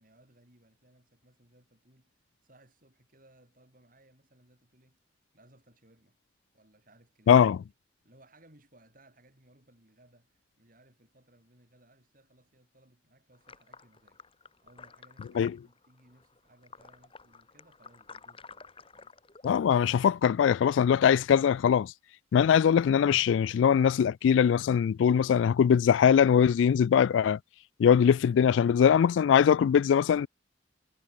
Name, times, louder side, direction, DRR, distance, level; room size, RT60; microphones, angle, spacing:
voice 1, 0.0-5.0 5.3-6.2 6.5-7.6 8.0-14.2 14.6-19.1, right 1 dB, 45° right, 6.3 m, -62 dB
voice 2, 7.3-7.6 15.4-15.5 19.4-21.9 22.3-27.4 27.8-30.3, left 8 dB, 80° left, 0.3 m, -22 dB
sound 1, 13.3-19.6, left 5 dB, 30° left, 2.9 m, -51 dB
head